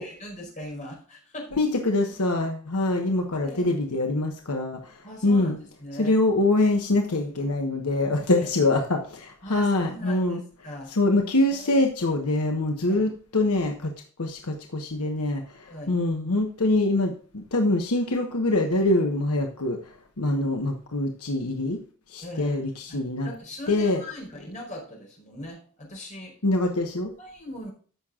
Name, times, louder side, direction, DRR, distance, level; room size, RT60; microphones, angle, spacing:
voice 1, 0.0-1.6 3.4-3.7 5.0-6.2 8.3-8.5 9.4-10.9 11.5-11.9 12.9-13.1 15.7-16.0 22.2-22.6 22.9-26.4 27.2-27.7, left 1 dB, 35° left, 0 dB, 4.7 m, -40 dB
voice 2, 1.6-5.6 6.0-10.4 10.9-13.9 14.2-19.8 20.2-21.8 22.1-23.3 23.7-24.0 26.4-27.1, left 2 dB, 80° left, 3 dB, 1.2 m, -24 dB
14.5 x 6.6 x 2.5 m, 0.43 s
head